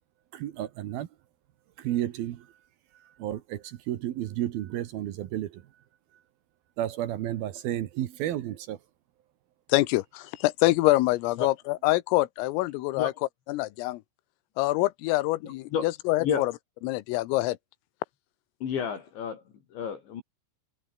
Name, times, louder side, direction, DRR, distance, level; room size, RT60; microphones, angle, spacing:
voice 1, 0.3-1.1 1.8-2.5 3.2-5.6 6.8-8.8, right 12 dB, 70° right, 2.4 m, -32 dB
voice 2, 9.7-13.1 13.5-14.0 14.6-16.5 16.8-17.6, left 19 dB, 85° left, 3.7 m, -25 dB
voice 3, 15.4-15.9 16.2-16.5 18.6-19.4 19.7-20.2, left 7 dB, 65° left, 5.6 m, -31 dB
omnidirectional pair, 5.9 m